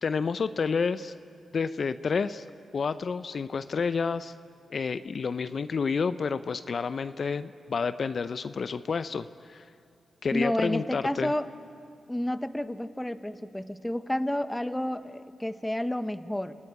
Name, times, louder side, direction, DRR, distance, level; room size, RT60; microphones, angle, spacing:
voice 1, 0.0-1.1 1.5-2.4 2.7-4.3 4.7-9.7 10.2-11.3, left 5 dB, 55° left, 12 dB, 0.6 m, -29 dB
voice 2, 10.3-11.5 12.1-16.6, left 1 dB, 10° left, 11 dB, 1.1 m, -30 dB
28.5 x 15.5 x 9.9 m, 2.5 s
cardioid pair, 60°, 0 cm